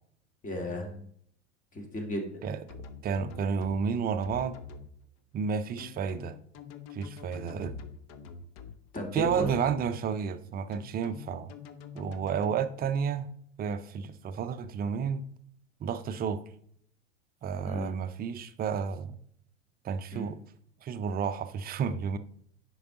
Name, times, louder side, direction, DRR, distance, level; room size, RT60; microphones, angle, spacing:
voice 1, 0.4-1.1 1.7-2.4 8.9-9.6 17.6-18.0 20.1-20.3, left 1 dB, 20° left, 2.1 m, -35 dB
sound 1, 2.7-3.8 4.2-4.9 5.8-8.8 9.2-9.8 10.7-12.6, left 6 dB, 45° left, 0.9 m, -45 dB
voice 2, 3.0-4.6 5.3-6.4 6.9-7.8 9.1-11.5 11.9-13.3 13.6-15.2 15.8-16.4 17.4-19.2 19.8-20.4 20.8-22.2, right 6 dB, 25° right, 0.6 m, -31 dB
10.0 x 4.7 x 3.8 m
figure-of-eight pair, 85°, 36 cm